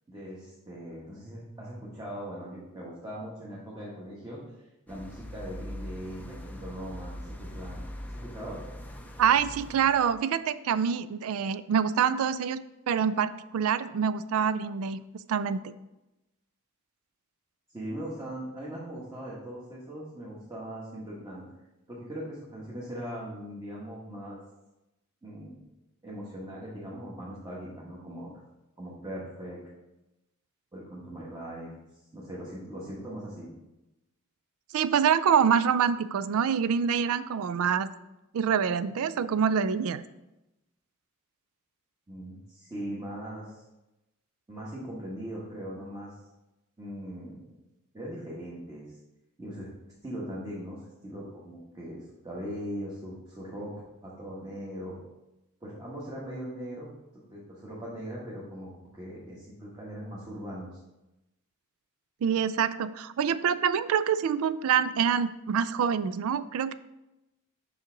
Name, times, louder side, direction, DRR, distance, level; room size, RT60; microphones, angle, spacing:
voice 1, 0.1-4.4 4.9-8.6 17.7-21.4 21.9-24.4 25.2-25.6 26.0-28.3 28.8-29.6 30.7-31.7 32.1-33.5 42.1-43.6 44.5-46.1 46.8-47.5 47.9-49.0 49.4-49.7 50.0-53.7 54.0-54.9 55.6-56.9 57.1-60.8, equal, 15° right, -7 dB, 1.3 m, -40 dB
sound 1, 4.9-10.0, left 1 dB, 5° left, 0.5 m, -42 dB
voice 2, 9.2-15.0 15.3-15.7 34.7-37.9 38.3-40.0 62.2-66.7, right 7 dB, 70° right, 15 dB, 0.3 m, -26 dB
5.7 x 5.4 x 3.9 m, 0.96 s
head